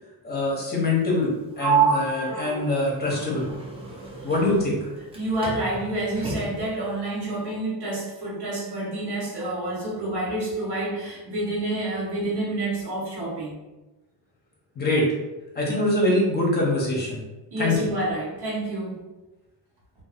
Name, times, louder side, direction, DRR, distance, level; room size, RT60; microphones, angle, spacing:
voice 1, 0.2-3.5 4.2-4.9 14.8-15.1 15.5-17.2 17.6-17.8, left 2 dB, 25° left, -3 dB, 0.8 m, -24 dB
Sliding door, 1.6-5.2 5.4-6.7, right 6 dB, 15° right, 0.4 m, -28 dB
voice 2, 5.1-13.6 17.5-19.0, right 1 dB, 65° right, -5 dB, 1.1 m, -28 dB
2.6 x 2.3 x 2.4 m, 1.1 s
cardioid pair, 140°, 42 cm